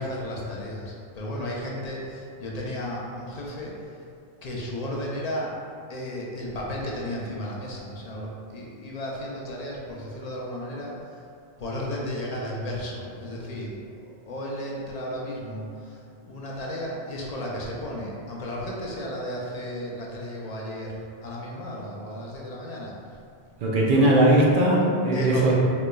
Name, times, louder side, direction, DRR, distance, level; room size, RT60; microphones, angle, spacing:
voice 1, 0.0-3.7 4.4-5.5 5.9-10.9 11.6-22.9 25.1-25.5, equal, 50° left, -3 dB, 0.5 m, -34 dB
voice 2, 23.6-25.5, right 1 dB, 60° right, -4 dB, 0.7 m, -19 dB
3.8 x 3.2 x 2.2 m, 2.5 s
omnidirectional pair, 1.0 m